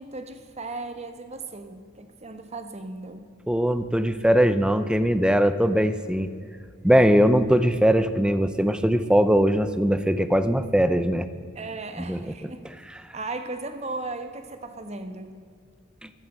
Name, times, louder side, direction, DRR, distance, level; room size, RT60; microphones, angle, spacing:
voice 1, 0.0-3.3 11.5-12.6 13.1-15.4, right 3 dB, 35° right, 8 dB, 1.2 m, -36 dB
voice 2, 3.5-6.3 6.8-11.3 12.0-12.2, equal, 5° right, 12 dB, 0.6 m, -20 dB
14.0 x 11.0 x 7.9 m, 2.2 s
head